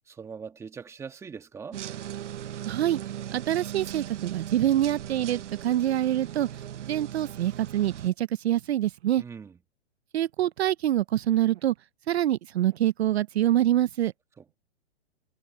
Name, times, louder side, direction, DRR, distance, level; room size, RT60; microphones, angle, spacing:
voice 1, 0.1-1.8 9.2-9.6 14.4-14.6, right 6 dB, 10° right, 1.6 m, -41 dB
sound 1, 1.7-8.1, right 11 dB, 80° right, 1.1 m, -38 dB
voice 2, 2.7-3.0 3.3-6.5 6.8-9.2 10.1-11.7 12.1-14.1, right 12 dB, 65° right, 0.7 m, -25 dB
hypercardioid pair, 160°, 35 cm